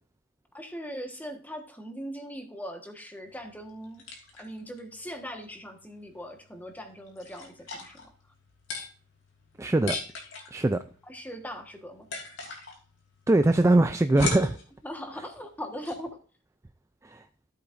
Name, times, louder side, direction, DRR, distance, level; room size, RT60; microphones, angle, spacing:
voice 1, 0.5-4.0 4.3-8.1 11.1-12.1 14.8-16.2, equal, 10° left, 1.3 m, -40 dB
sound 1, 3.2-16.1, left 3 dB, 75° left, 2.9 m, -41 dB
voice 2, 9.6-10.0 10.5-10.8 13.3-14.6 17.0-17.2, right 2 dB, 15° right, 0.3 m, -22 dB
13.5 x 8.1 x 2.6 m
head